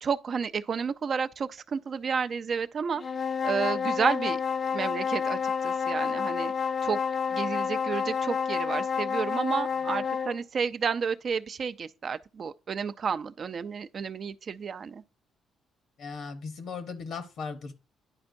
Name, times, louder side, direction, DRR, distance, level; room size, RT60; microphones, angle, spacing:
voice 1, 0.0-3.0 3.4-4.4 4.7-6.5 6.8-7.0 7.3-15.0, right 6 dB, 50° right, 0.4 m, -31 dB
sound 1, 3.0-10.4, left 6 dB, 40° left, 0.4 m, -29 dB
voice 2, 16.0-17.8, left 5 dB, 70° left, 0.8 m, -37 dB
10.5 x 4.4 x 2.5 m
cardioid pair, 90°, 0 cm